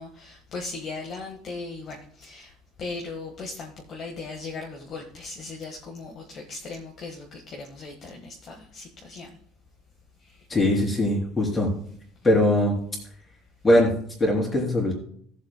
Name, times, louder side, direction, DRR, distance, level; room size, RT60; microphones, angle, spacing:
voice 1, 0.0-9.4 10.2-10.5 12.2-12.4, left 3 dB, 30° left, 0 dB, 1.5 m, -38 dB
voice 2, 10.5-11.7 12.2-12.7 13.6-13.9 14.2-14.9, left 1 dB, 15° left, -2 dB, 3.3 m, -21 dB
17.5 x 7.3 x 2.2 m, 0.63 s
cardioid pair, 170°, 0 cm